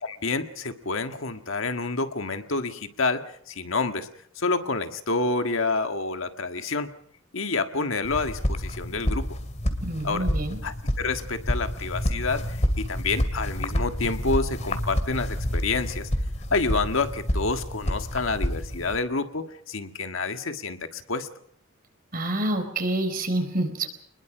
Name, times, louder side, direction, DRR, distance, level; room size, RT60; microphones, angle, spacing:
voice 1, 0.0-4.1 4.3-6.9 7.3-9.3 10.0-10.3 10.6-16.1 16.5-21.3, left 3 dB, 80° left, 7 dB, 1.7 m, -28 dB
sound 1, 8.0-19.0, equal, 35° left, 2.4 m, -29 dB
voice 2, 9.8-10.6 22.1-23.9, right 1 dB, 45° right, 7 dB, 4.2 m, -27 dB
27.5 x 21.0 x 5.0 m, 0.66 s
head